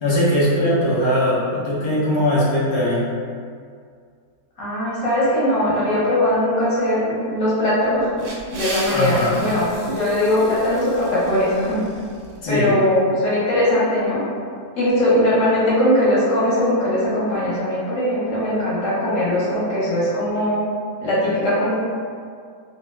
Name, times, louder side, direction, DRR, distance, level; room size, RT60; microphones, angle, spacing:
voice 1, 0.0-3.1 8.9-9.4 12.4-12.8, equal, 40° left, -9 dB, 0.4 m, -20 dB
voice 2, 4.6-8.3 8.5-11.9 12.5-14.2 14.8-20.6 21.0-21.7, left 1 dB, 60° left, -8 dB, 1.2 m, -20 dB
sound 1, 7.9-12.4, right 1 dB, 75° right, 1.0 m, -36 dB
2.7 x 2.0 x 3.3 m, 2.2 s
omnidirectional pair, 1.6 m